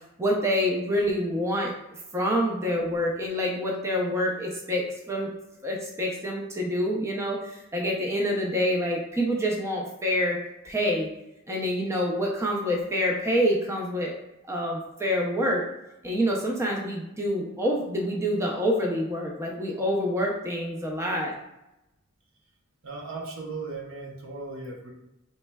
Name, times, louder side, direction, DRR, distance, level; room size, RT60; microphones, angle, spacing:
voice 1, 0.2-1.7 2.1-5.3 5.6-10.4 10.6-11.1 11.5-14.1 14.5-15.7 16.0-21.4, equal, 15° right, -1 dB, 0.4 m, -27 dB
voice 2, 22.8-24.9, right 3 dB, 75° right, 0 dB, 0.8 m, -37 dB
4.2 x 3.1 x 2.2 m, 0.92 s
head